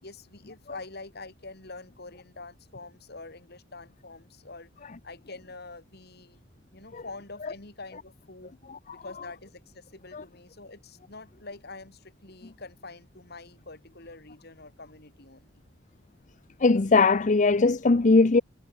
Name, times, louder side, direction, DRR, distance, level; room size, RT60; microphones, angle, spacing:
voice 1, 0.0-4.7 5.0-6.4 6.7-8.5 8.9-15.5, left 3 dB, 55° left, 4.3 m, -45 dB
voice 2, 16.6-18.4, left 3 dB, 40° left, 0.6 m, -20 dB
head